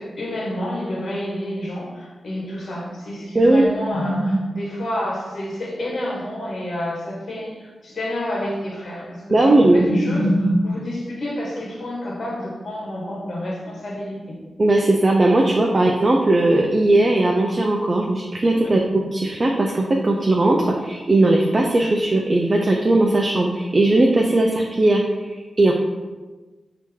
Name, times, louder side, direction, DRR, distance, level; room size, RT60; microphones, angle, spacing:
voice 1, 0.0-14.4 15.4-15.9 18.6-18.8, equal, 70° left, -3 dB, 1.2 m, -27 dB
voice 2, 3.3-3.6 9.3-9.9 14.6-18.8 19.1-25.0 25.3-25.7, right 2 dB, 40° right, 0 dB, 0.5 m, -18 dB
4.4 x 2.9 x 3.6 m, 1.2 s
cardioid pair, 60°, 0 cm